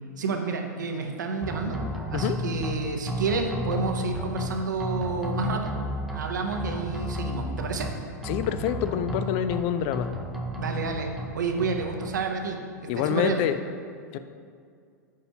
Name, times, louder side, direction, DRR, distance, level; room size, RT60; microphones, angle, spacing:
voice 1, 0.2-1.8 2.1-5.7 6.1-7.9 10.6-13.4, right 4 dB, 80° right, 4 dB, 0.7 m, -30 dB
sound 1, 1.4-2.7 3.1-4.5 4.8-6.2 6.5-7.9 8.2-9.6 9.9-11.3 11.6-12.1, equal, ahead, 0.6 m, -32 dB
voice 2, 8.2-10.1 12.9-13.5 14.1-14.2, left 10 dB, 50° left, 11 dB, 0.4 m, -26 dB
9.6 x 4.3 x 2.8 m, 2.3 s
hypercardioid pair, 100°, 10 cm